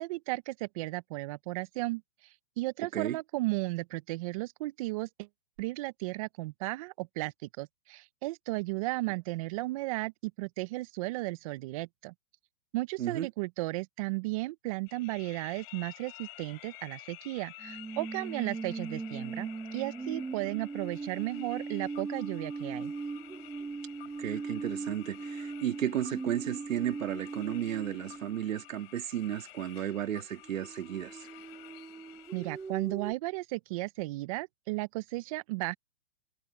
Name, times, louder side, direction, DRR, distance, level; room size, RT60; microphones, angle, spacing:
voice 1, 0.0-2.0 2.6-5.3 5.6-12.1 12.7-22.9 32.3-35.7, right 21 dB, 25° right, 0.5 m, -35 dB
sound 1, 14.9-32.7, left 20 dB, 45° left, 6.2 m, -52 dB
sound 2, 17.6-28.6 30.4-33.1, right 4 dB, 5° right, 1.3 m, -40 dB
voice 2, 24.2-31.3, right 11 dB, 70° right, 2.0 m, -33 dB
hypercardioid pair, 140°, 41 cm